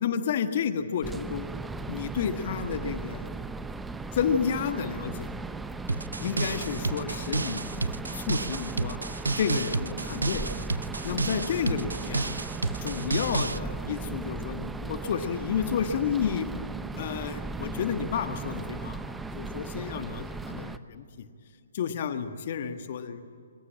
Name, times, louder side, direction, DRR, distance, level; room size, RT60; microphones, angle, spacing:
voice 1, 0.0-1.5 1.9-3.4 4.1-5.3 6.2-9.0 9.3-10.5 11.0-12.3 12.8-16.5 17.0-21.3 21.7-23.2, left 7 dB, 45° left, 8 dB, 1.5 m, -31 dB
sound 1, 1.0-20.8, right 3 dB, 5° right, 0.8 m, -37 dB
sound 2, 5.9-13.6, right 3 dB, 80° right, 0.5 m, -31 dB
24.0 x 20.0 x 8.8 m, 2.4 s
figure-of-eight pair, 130°, 0 cm